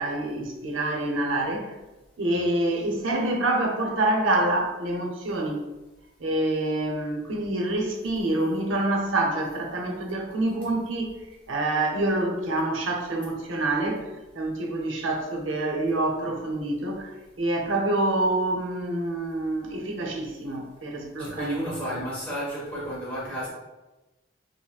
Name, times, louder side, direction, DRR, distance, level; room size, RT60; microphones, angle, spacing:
voice 1, 0.0-1.7 2.2-5.6 6.2-11.2 11.5-14.1 14.3-21.6 21.9-22.0, right 2 dB, 90° right, 2 dB, 0.7 m, -27 dB
voice 2, 21.2-23.5, equal, 10° left, -8 dB, 1.1 m, -32 dB
5.5 x 2.0 x 2.3 m, 1.1 s
head